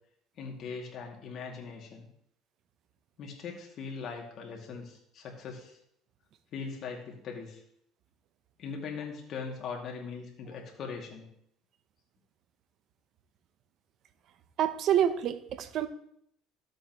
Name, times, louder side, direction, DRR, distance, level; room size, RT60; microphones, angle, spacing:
voice 1, 0.4-2.1 3.2-5.8 6.5-7.6 8.6-11.3, left 5 dB, 50° left, 0 dB, 2.3 m, -40 dB
voice 2, 14.6-15.9, right 10 dB, 55° right, 11 dB, 0.8 m, -27 dB
13.0 x 7.7 x 3.0 m, 0.71 s
cardioid pair, 120°, 0 cm